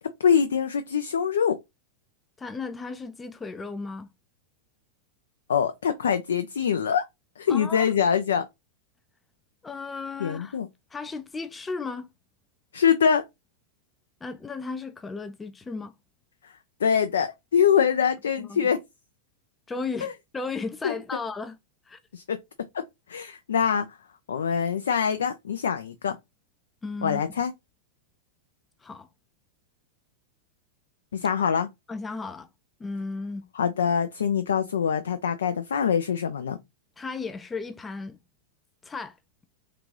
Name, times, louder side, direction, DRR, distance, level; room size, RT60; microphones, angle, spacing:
voice 1, 0.2-1.6 5.5-7.0 7.4-8.5 10.2-10.7 12.7-13.2 16.8-18.8 20.0-20.1 20.8-20.9 22.1-22.4 22.7-22.8 23.1-23.9 24.3-26.2 27.0-27.5 31.1-31.7 33.5-36.6, left 7 dB, 65° left, 0.5 m, -24 dB
voice 2, 2.4-4.1 7.5-7.9 9.6-10.6 10.9-12.1 14.2-15.9 18.4-18.6 19.7-21.6 21.9-22.0 26.8-27.2 28.8-29.1 31.9-32.5 32.8-33.4 37.0-38.2 38.8-39.2, left 4 dB, 15° left, 0.5 m, -35 dB
3.8 x 3.3 x 3.2 m
figure-of-eight pair, 90°, 0 cm